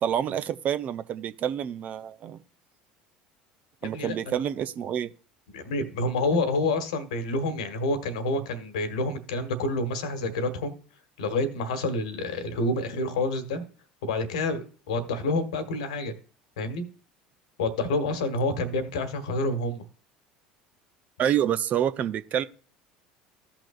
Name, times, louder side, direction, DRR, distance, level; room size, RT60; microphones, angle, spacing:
voice 1, 0.0-2.4 3.8-5.1 21.2-22.4, right 10 dB, 40° right, 0.6 m, -27 dB
voice 2, 3.8-4.4 5.5-10.8 11.2-13.6 14.0-16.1 16.6-16.8 17.6-19.8, left 2 dB, 70° left, 1.4 m, -28 dB
15.0 x 5.9 x 2.4 m
figure-of-eight pair, 70°, 4 cm